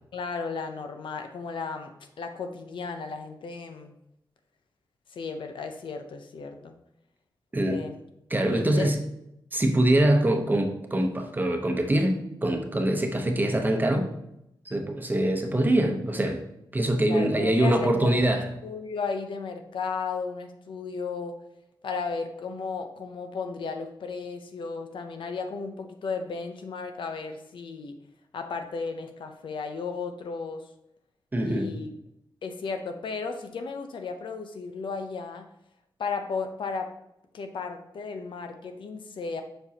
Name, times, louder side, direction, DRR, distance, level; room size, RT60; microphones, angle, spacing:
voice 1, 0.1-1.9 2.2-3.9 5.1-6.7 7.6-7.9 8.5-8.9 17.1-18.2 18.6-21.4 21.8-28.0 28.3-30.6 31.5-31.9 32.4-35.5 36.0-36.9 37.3-39.4, left 4 dB, 80° left, 6 dB, 0.7 m, -34 dB
voice 2, 8.3-9.0 9.5-14.1 14.7-16.4 16.7-18.5 31.3-31.7, right 1 dB, 20° right, 4 dB, 0.9 m, -24 dB
7.2 x 5.3 x 2.8 m, 0.82 s
wide cardioid pair, 105°, 8 cm